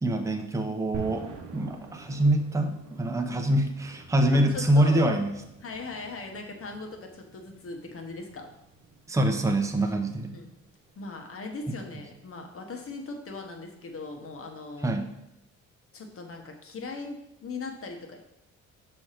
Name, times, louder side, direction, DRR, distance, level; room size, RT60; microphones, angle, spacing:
voice 1, 0.0-1.3 1.5-5.3 9.1-10.3 14.8-15.1, right 1 dB, 10° right, 4 dB, 0.7 m, -25 dB
sound 1, 0.9-11.2, right 4 dB, 80° right, 1.0 m, -47 dB
voice 2, 4.3-5.1 5.6-8.5 9.8-10.0 10.3-10.5 11.0-14.9 15.9-18.2, left 3 dB, 45° left, 3 dB, 1.2 m, -39 dB
6.2 x 3.4 x 5.7 m, 0.84 s
cardioid pair, 90°, 30 cm